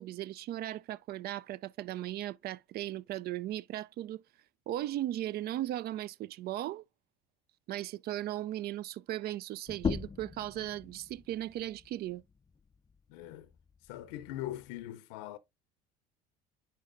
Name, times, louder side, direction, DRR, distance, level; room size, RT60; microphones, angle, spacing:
voice 1, 0.0-4.2 4.7-6.8 7.7-12.2, right 13 dB, 50° right, 0.4 m, -37 dB
sound 1, 9.7-14.9, left 6 dB, 20° left, 0.4 m, -41 dB
voice 2, 13.1-13.5 13.9-15.4, left 14 dB, 75° left, 0.6 m, -41 dB
10.0 x 4.3 x 2.6 m
hypercardioid pair, 70°, 21 cm